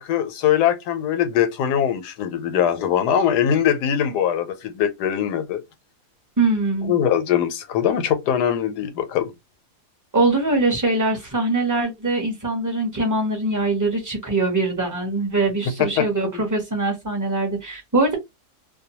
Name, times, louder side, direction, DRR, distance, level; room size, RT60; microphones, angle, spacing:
voice 1, 0.0-5.6 6.9-9.3 15.8-16.4, left 9 dB, 90° left, 1.2 m, -22 dB
voice 2, 6.4-6.9 10.1-18.2, right 2 dB, 20° right, 0.6 m, -22 dB
2.6 x 2.2 x 2.8 m
omnidirectional pair, 1.7 m